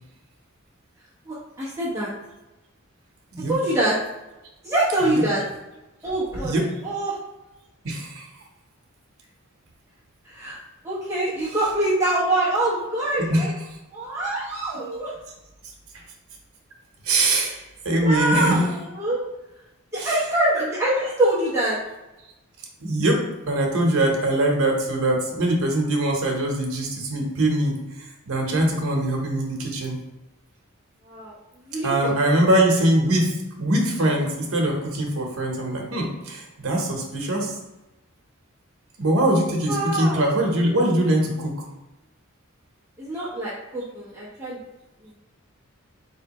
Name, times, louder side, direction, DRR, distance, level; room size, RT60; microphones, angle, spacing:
voice 1, 1.2-2.1 3.5-4.0 4.6-5.4 6.0-7.2 10.2-10.6 10.8-13.5 13.9-15.1 17.2-17.3 18.0-19.2 19.9-21.8 31.1-31.3 31.7-32.1 32.5-32.6 39.7-40.3 43.0-44.6, right 1 dB, 15° right, -10 dB, 0.9 m, -25 dB
voice 2, 6.3-6.7 7.8-8.3 13.2-13.5 17.0-17.5 17.8-18.6 20.0-20.1 22.8-30.0 31.8-37.5 39.0-41.6, right 1 dB, 80° right, 1 dB, 1.0 m, -22 dB
4.2 x 3.2 x 3.0 m, 1.0 s
head